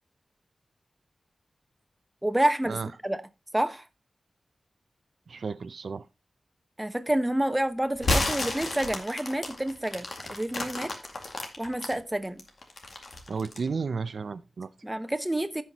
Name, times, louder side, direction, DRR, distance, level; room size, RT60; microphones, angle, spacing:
voice 1, 2.2-3.2 3.5-3.9 6.8-10.9 11.6-12.4 14.8-15.6, right 1 dB, 10° right, 0.9 m, -28 dB
voice 2, 5.3-6.1 13.3-14.7, right 5 dB, 75° right, 0.5 m, -33 dB
sound 1, 8.0-11.9 12.4-13.7, left 2 dB, 60° left, 2.1 m, -31 dB
15.5 x 5.8 x 2.9 m
wide cardioid pair, 105°, 0 cm